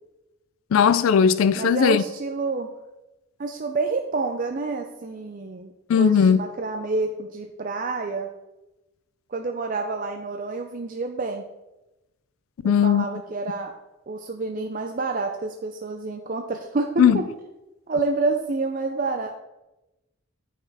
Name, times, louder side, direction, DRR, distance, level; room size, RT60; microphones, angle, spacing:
voice 1, 0.7-2.0 5.9-6.4 12.6-13.1 17.0-17.2, left 7 dB, 85° left, 0.3 m, -17 dB
voice 2, 1.6-2.7 3.4-8.3 9.3-11.4 12.6-13.7 14.1-17.3 17.9-19.3, right 3 dB, 40° right, 0.5 m, -28 dB
8.5 x 5.5 x 4.8 m
head